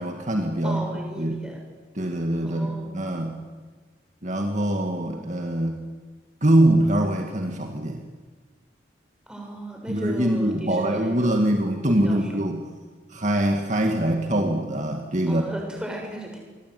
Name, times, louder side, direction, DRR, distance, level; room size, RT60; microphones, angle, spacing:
voice 1, 0.0-0.8 1.2-1.4 2.0-3.4 4.2-5.8 6.4-8.0 9.9-12.6 13.1-15.4, right 1 dB, 40° right, 3 dB, 2.1 m, -23 dB
voice 2, 0.6-1.6 2.4-3.0 9.3-11.5 12.0-12.3 15.3-16.4, equal, 5° right, 0 dB, 6.6 m, -35 dB
27.0 x 23.0 x 9.5 m, 1.4 s
head